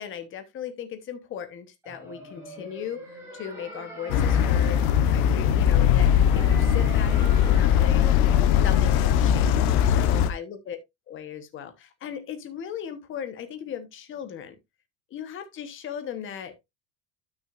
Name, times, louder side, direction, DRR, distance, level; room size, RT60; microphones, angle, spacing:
voice 1, 0.0-4.8 5.1-8.1 8.5-10.8 11.1-14.6 15.1-16.6, left 8 dB, 25° left, 1.1 m, -37 dB
sound 1, 1.8-8.9, right 1 dB, 5° right, 3.3 m, -43 dB
sound 2, 4.1-10.3, left 9 dB, 70° left, 1.2 m, -20 dB
12.5 x 6.2 x 2.5 m
cardioid pair, 175°, 45 cm